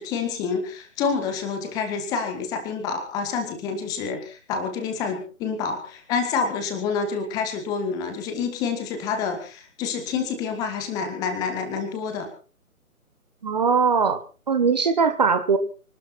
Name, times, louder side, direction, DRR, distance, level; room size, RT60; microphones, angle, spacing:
voice 1, 0.0-12.3, left 5 dB, 10° left, 6 dB, 1.5 m, -28 dB
voice 2, 13.4-14.2 14.5-15.6, right 5 dB, 30° right, 9 dB, 1.3 m, -20 dB
24.5 x 12.5 x 4.3 m, 0.38 s
figure-of-eight pair, 145°, 43 cm